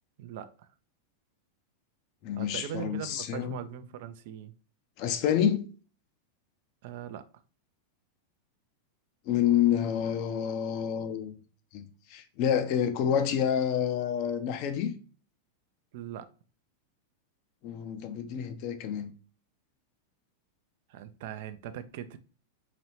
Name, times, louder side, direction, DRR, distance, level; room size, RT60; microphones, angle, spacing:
voice 1, 0.2-0.7 2.4-4.5 6.8-7.3 15.9-16.3 20.9-22.2, right 10 dB, 50° right, 0.4 m, -40 dB
voice 2, 2.2-3.6 5.0-5.7 9.3-11.3 11.7-14.9 17.6-19.1, left 9 dB, 45° left, 0.6 m, -28 dB
4.0 x 3.1 x 2.9 m
figure-of-eight pair, 90°, 0 cm